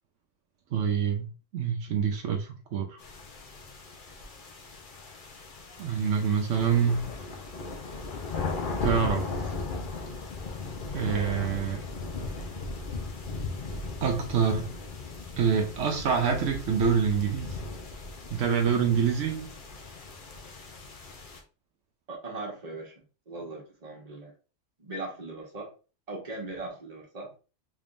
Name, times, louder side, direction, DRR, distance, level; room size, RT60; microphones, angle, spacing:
voice 1, 0.7-3.0 5.8-7.1 8.8-9.5 10.9-11.8 14.0-14.7 15.4-17.6 18.3-19.5, right 6 dB, 80° right, 1.0 m, -26 dB
sound 1, 3.0-21.4, left 3 dB, 50° left, 0.8 m, -37 dB
voice 2, 22.1-22.9 23.3-24.3 24.8-25.7 26.1-27.3, right 2 dB, 35° right, 1.2 m, -39 dB
3.6 x 3.5 x 2.5 m
omnidirectional pair, 1.2 m